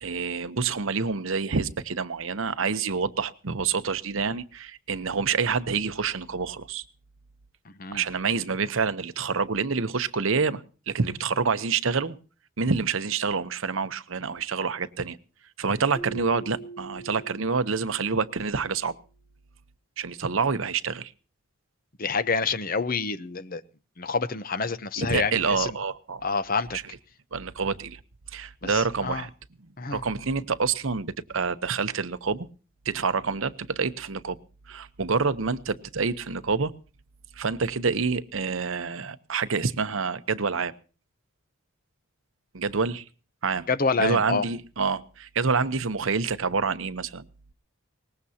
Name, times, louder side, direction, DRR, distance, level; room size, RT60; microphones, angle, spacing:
voice 1, 0.0-6.8 7.9-12.2 12.6-15.2 15.6-18.9 20.0-21.1 25.0-26.2 26.7-26.8 27.3-28.0 28.3-29.3 29.9-32.5 32.8-34.4 34.7-36.7 37.4-40.7 42.5-43.0 43.4-43.7 44.0-47.2, right 5 dB, 75° right, 0.9 m, -27 dB
Keyboard (musical), 15.9-18.7, right 3 dB, 20° right, 3.6 m, -43 dB
voice 2, 22.0-23.6 24.0-25.8 26.2-26.8 28.6-29.2 29.8-30.0 43.7-44.5, left 4 dB, 45° left, 0.8 m, -27 dB
22.0 x 19.5 x 2.8 m
head